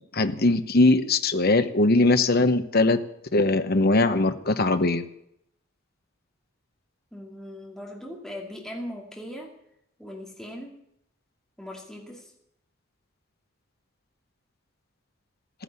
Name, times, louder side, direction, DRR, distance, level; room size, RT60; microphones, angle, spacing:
voice 1, 0.1-3.0 3.3-5.0, left 2 dB, 50° left, 9 dB, 1.1 m, -21 dB
voice 2, 7.1-9.5 10.0-10.8 11.6-12.3, left 1 dB, ahead, -1 dB, 2.4 m, -39 dB
15.0 x 10.0 x 8.3 m, 0.76 s
head